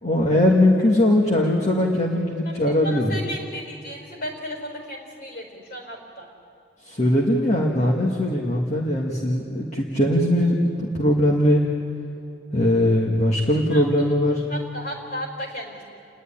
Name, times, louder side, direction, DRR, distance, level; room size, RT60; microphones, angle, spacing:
voice 1, 0.0-3.1 6.8-11.6 12.5-14.4, left 1 dB, 35° left, -1 dB, 1.7 m, -20 dB
voice 2, 2.4-6.3 13.7-15.8, equal, 50° left, 1 dB, 4.6 m, -35 dB
30.0 x 11.0 x 10.0 m, 2.6 s
head